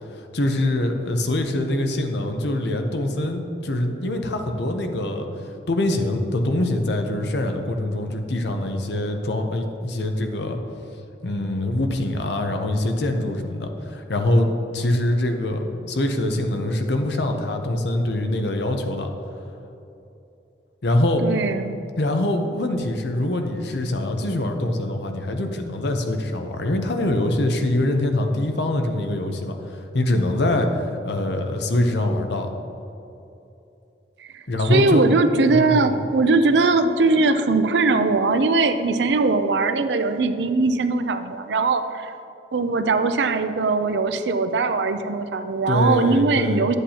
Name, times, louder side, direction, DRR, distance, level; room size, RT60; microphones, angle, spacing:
voice 1, 0.3-5.3 5.7-10.6 11.2-19.1 20.8-21.2 22.0-29.6 29.9-32.5 34.5-35.1 35.5-36.0 45.7-46.7, left 1 dB, 65° left, 5 dB, 0.8 m, -24 dB
voice 2, 21.2-21.7 34.2-42.1 42.5-46.8, right 3 dB, 75° right, 9 dB, 0.5 m, -20 dB
10.0 x 8.1 x 2.9 m, 2.9 s
head